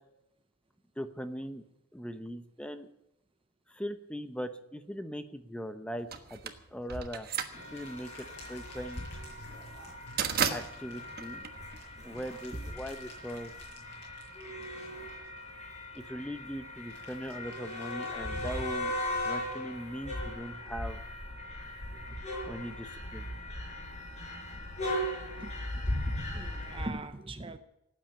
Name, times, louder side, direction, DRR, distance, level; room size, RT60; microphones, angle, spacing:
voice 1, 1.0-1.6 1.9-2.9 3.7-7.3 7.7-9.1 10.5-11.4 12.0-13.5 15.9-19.0 19.2-21.0 22.4-23.3, equal, 5° left, 9 dB, 0.9 m, -40 dB
sound 1, 6.1-12.3, right 7 dB, 45° right, 1.3 m, -35 dB
sound 2, 6.9-16.1 16.5-20.7, left 3 dB, 50° left, 7.1 m, -57 dB
sound 3, 7.5-26.9, left 1 dB, 35° left, 5.0 m, -38 dB
voice 2, 21.9-22.2 25.4-27.6, right 2 dB, 25° right, 10 dB, 0.8 m, -42 dB
18.0 x 9.1 x 8.7 m, 0.87 s
head